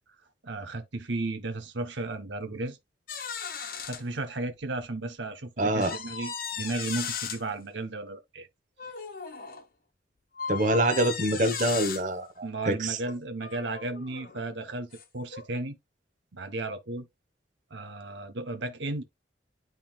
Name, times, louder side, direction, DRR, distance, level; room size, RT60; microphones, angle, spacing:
voice 1, 0.4-2.8 3.8-8.5 12.4-15.8 16.3-17.1 17.7-19.0, right 2 dB, 75° right, 0.9 m, -34 dB
sound 1, 3.1-4.0 4.6-4.7 5.8-7.4 8.8-9.6 10.4-12.0 13.0-14.4 14.9-15.0 15.3-15.5, left 6 dB, 50° left, 1.1 m, -36 dB
voice 2, 5.6-5.9 10.5-13.0, right 1 dB, 40° right, 1.1 m, -26 dB
10.5 x 3.8 x 2.4 m
head